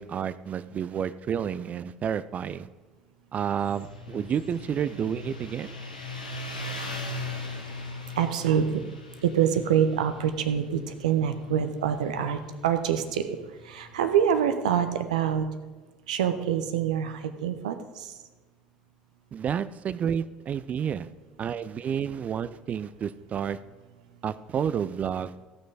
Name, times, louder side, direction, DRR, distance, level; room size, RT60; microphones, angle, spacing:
voice 1, 0.0-2.7 3.3-5.7 19.3-21.1 21.4-23.6 24.2-25.3, right 8 dB, 35° right, 15 dB, 0.5 m, -30 dB
Motorcycle, 3.4-14.5, left 2 dB, 85° left, 1.2 m, -40 dB
voice 2, 8.2-8.8 9.2-13.3 13.6-15.5 16.1-18.1, right 8 dB, 70° right, 9 dB, 0.9 m, -26 dB
16.0 x 6.1 x 4.9 m, 1.3 s
figure-of-eight pair, 60°, 4 cm